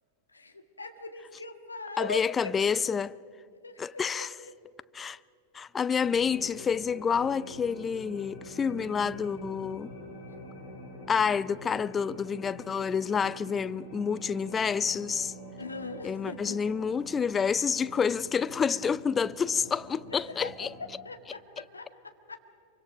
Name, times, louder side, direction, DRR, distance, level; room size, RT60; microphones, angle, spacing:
voice 1, 0.3-2.7 3.6-4.5 10.3-10.4 15.6-16.6 20.1-20.5 21.0-22.4, left 3 dB, 80° left, 1.7 m, -41 dB
voice 2, 2.0-3.2 3.8-4.3 4.9-5.2 5.5-9.9 11.1-15.3 16.0-20.7 21.6-21.7, left 6 dB, 20° left, 0.5 m, -28 dB
sound 1, 6.0-20.8, equal, 50° left, 7.1 m, -46 dB
26.0 x 24.5 x 5.2 m
figure-of-eight pair, 90°, 0 cm